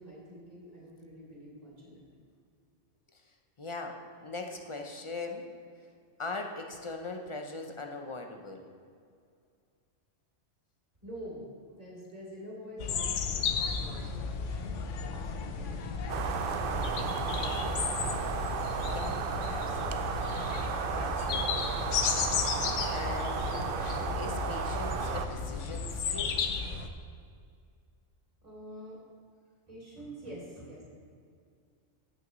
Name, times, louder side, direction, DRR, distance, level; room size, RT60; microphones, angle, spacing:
voice 1, 0.0-2.0 2.3-2.4 11.0-17.5 28.4-29.0 29.7-30.8, equal, 30° right, -6 dB, 2.7 m, -47 dB
voice 2, 3.6-5.5 6.2-8.7 18.9-19.2 19.5-20.3 21.0-21.5 22.9-23.8 24.1-26.4, left 3 dB, 35° left, 3 dB, 0.5 m, -40 dB
sound 1, 12.8-26.9, left 5 dB, 85° left, 1.0 m, -34 dB
sound 2, 16.1-25.3, right 6 dB, 60° right, 0.6 m, -34 dB
14.5 x 6.2 x 3.1 m, 2.2 s
omnidirectional pair, 1.2 m